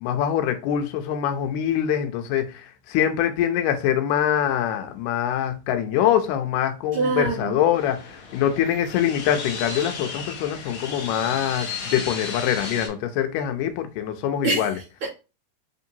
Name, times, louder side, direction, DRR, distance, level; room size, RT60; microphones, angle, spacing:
voice 1, 0.0-14.7, left 10 dB, 85° left, 2.2 m, -24 dB
voice 2, 6.9-7.6 14.4-15.1, right 3 dB, 70° right, 1.3 m, -25 dB
sound 1, 7.7-12.9, left 5 dB, 70° left, 1.2 m, -34 dB
5.1 x 2.7 x 2.7 m
omnidirectional pair, 3.7 m